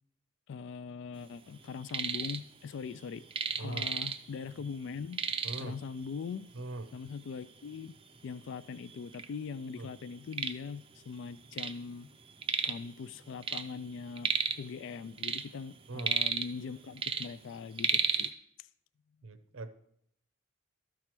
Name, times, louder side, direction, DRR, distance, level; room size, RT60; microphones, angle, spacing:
voice 1, 0.5-3.2 3.6-5.2 5.6-6.5 6.9-7.9 8.2-12.1 12.6-14.3 14.6-18.3, left 5 dB, 60° left, 0.3 m, -41 dB
sound 1, 1.6-2.4 2.7-4.5 4.7-4.8 5.1-5.8 6.6-6.7 7.2-7.3 8.0-8.1 8.4-9.3 9.7-11.8 12.1-12.9 13.2-14.7 15.0-16.7 17.0-18.3, right 6 dB, 25° right, 0.5 m, -33 dB
voice 2, 3.6-3.9 5.4-5.8 6.5-6.9 9.8-9.9 15.9-16.2 19.2-19.7, right 2 dB, 70° right, 0.7 m, -40 dB
12.5 x 4.7 x 5.9 m
head